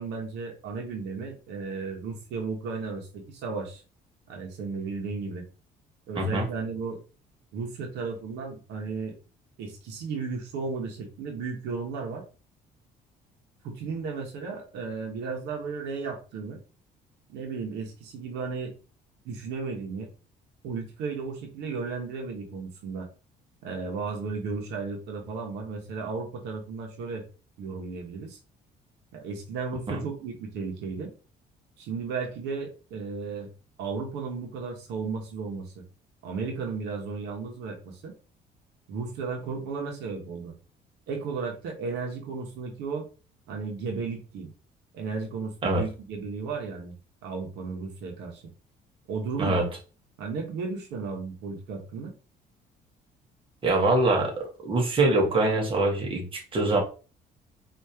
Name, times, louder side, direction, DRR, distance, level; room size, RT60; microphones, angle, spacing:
voice 1, 0.0-3.8 4.3-5.4 6.1-7.0 7.5-9.1 9.6-12.2 13.6-16.6 17.3-18.7 19.2-20.1 20.6-23.1 23.6-27.2 27.6-28.4 29.1-31.1 31.8-33.5 33.8-35.8 36.2-38.1 38.9-40.5 41.1-43.1 43.5-44.5 44.9-47.0 47.2-48.4 49.1-49.7 50.2-52.1, right 4 dB, 85° right, 2 dB, 1.2 m, -34 dB
voice 2, 6.2-6.5 29.9-30.0 45.6-45.8 49.4-49.6 53.6-56.8, right 2 dB, 30° right, 0 dB, 1.4 m, -24 dB
4.8 x 2.8 x 2.8 m, 0.34 s
cardioid pair, 110°, 17 cm